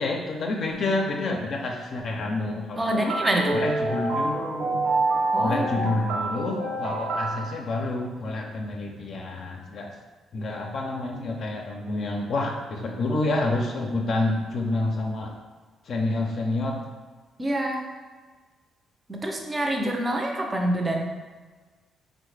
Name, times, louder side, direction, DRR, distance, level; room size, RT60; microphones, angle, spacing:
voice 1, 0.0-3.1 3.5-4.9 5.4-9.9 10.3-15.4 15.9-16.8, left 2 dB, 60° left, 0 dB, 0.4 m, -28 dB
voice 2, 2.8-3.6 5.3-5.9 17.4-17.9 19.1-21.1, right 1 dB, 20° right, 2 dB, 0.5 m, -26 dB
sound 1, 3.1-7.6, right 2 dB, 80° right, 0.6 m, -27 dB
3.5 x 2.1 x 3.2 m, 1.4 s
cardioid pair, 90°, 0 cm